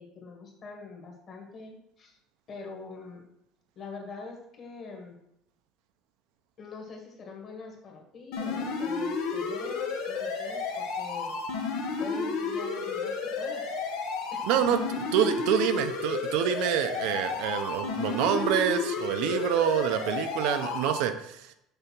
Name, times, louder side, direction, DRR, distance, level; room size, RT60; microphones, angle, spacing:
voice 1, 0.0-2.2 2.5-3.2 3.8-5.2 6.6-11.3 12.0-13.9 14.3-14.6, left 4 dB, 35° left, 0 dB, 1.8 m, -44 dB
sound 1, 8.3-21.0, left 4 dB, 80° left, 1.3 m, -32 dB
voice 2, 14.5-14.8 15.1-21.5, right 9 dB, 70° right, 8 dB, 0.6 m, -27 dB
6.7 x 3.4 x 6.0 m, 0.79 s
cardioid pair, 150°, 0 cm